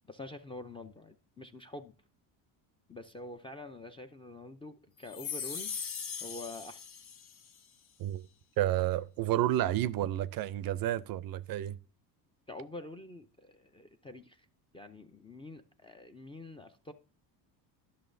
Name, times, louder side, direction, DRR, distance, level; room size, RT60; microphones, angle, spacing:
voice 1, 0.1-1.9 2.9-5.7 6.2-6.9 12.5-14.5 14.7-16.9, left 2 dB, 15° left, 0.4 m, -46 dB
sound 1, 5.0-7.6, left 7 dB, 65° left, 1.4 m, -40 dB
voice 2, 8.6-11.8, right 13 dB, 50° right, 0.5 m, -30 dB
11.0 x 6.2 x 2.6 m
supercardioid pair, 95°, 45 cm